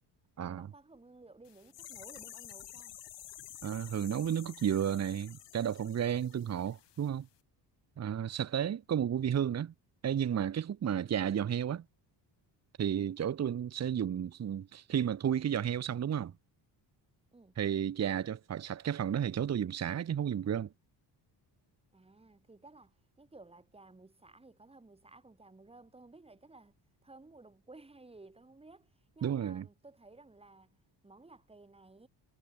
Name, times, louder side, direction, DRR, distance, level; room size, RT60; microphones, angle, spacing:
voice 1, 0.4-2.9 13.0-13.2 17.3-17.5 21.9-26.8 27.0-32.1, right 3 dB, 15° right, 7.1 m, -56 dB
sound 1, 1.4-7.1 7.3-7.4, left 13 dB, 75° left, 5.5 m, -51 dB
voice 2, 3.6-7.3 8.0-9.7 10.0-11.8 12.8-16.3 17.6-20.7 29.2-29.6, right 9 dB, 35° right, 1.2 m, -32 dB
cardioid pair, 165°, 43 cm